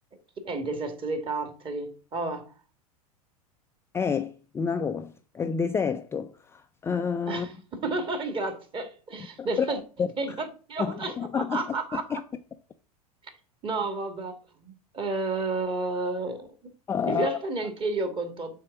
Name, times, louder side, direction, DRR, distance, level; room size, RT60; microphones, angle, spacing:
voice 1, 0.4-2.5 7.3-12.2 13.6-16.5 17.1-18.5, right 3 dB, 25° right, 1.9 m, -31 dB
voice 2, 3.9-7.5 9.4-10.1 10.8-11.6 11.9-12.2 16.9-17.4, left 6 dB, 15° left, 0.4 m, -29 dB
7.4 x 4.3 x 6.0 m
figure-of-eight pair, 85°, 20 cm